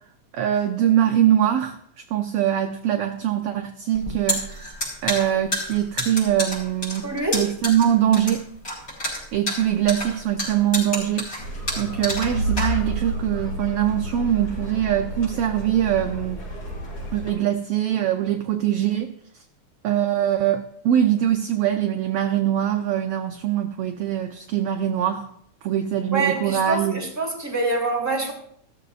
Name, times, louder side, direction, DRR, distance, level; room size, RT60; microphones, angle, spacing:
voice 1, 0.3-1.8 2.1-8.4 9.3-16.4 17.1-19.1 19.8-25.3 25.6-27.0, right 11 dB, 75° right, 1.4 m, -23 dB
sound 1, 3.9-13.2, left 1 dB, 30° left, 5.0 m, -29 dB
voice 2, 7.0-7.4 26.1-28.3, right 3 dB, 5° right, 2.6 m, -25 dB
sound 2, 11.4-17.3, equal, 55° left, 5.5 m, -31 dB
15.5 x 13.5 x 2.5 m
omnidirectional pair, 3.3 m